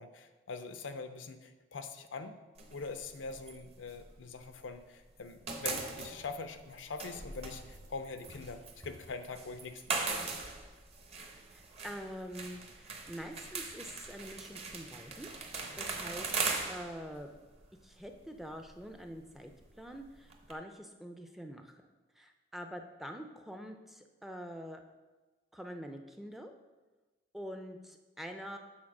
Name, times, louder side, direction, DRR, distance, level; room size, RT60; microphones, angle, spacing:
voice 1, 0.0-2.4 2.7-10.3, left 4 dB, 85° left, 9 dB, 0.6 m, -43 dB
sound 1, 2.6-4.8 5.1-20.5, right 3 dB, 35° right, 0.8 m, -41 dB
voice 2, 11.5-15.3 15.8-16.4 16.7-17.3 17.8-19.5 19.8-21.8 22.2-24.8 25.5-26.5 27.3-28.6, equal, ahead, 4 dB, 0.4 m, -45 dB
7.4 x 4.2 x 6.0 m, 1.2 s
head